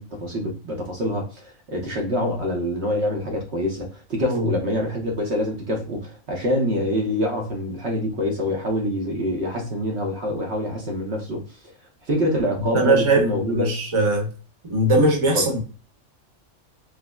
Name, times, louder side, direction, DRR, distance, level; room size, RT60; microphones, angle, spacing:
voice 1, 0.0-11.4 12.1-13.8 15.3-15.5, left 1 dB, 60° right, 1.0 m, -25 dB
voice 2, 12.7-14.3 14.7-15.6, right 2 dB, 25° right, 0.9 m, -20 dB
4.8 x 2.0 x 2.2 m
omnidirectional pair, 1.3 m